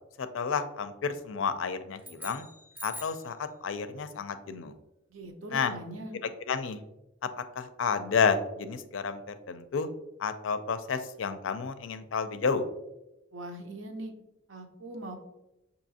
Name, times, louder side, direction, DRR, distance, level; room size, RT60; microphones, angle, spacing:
voice 1, 0.2-2.4 2.8-4.7 5.5-5.7 6.5-6.8 7.6-9.9 10.2-12.6, left 5 dB, 80° left, 10 dB, 0.4 m, -30 dB
sound 1, 2.0-3.3, left 1 dB, 10° right, 0.5 m, -44 dB
voice 2, 5.1-6.2 13.3-14.1 14.5-15.2, right 1 dB, 80° right, 4 dB, 0.7 m, -41 dB
6.4 x 2.8 x 2.7 m, 0.93 s
head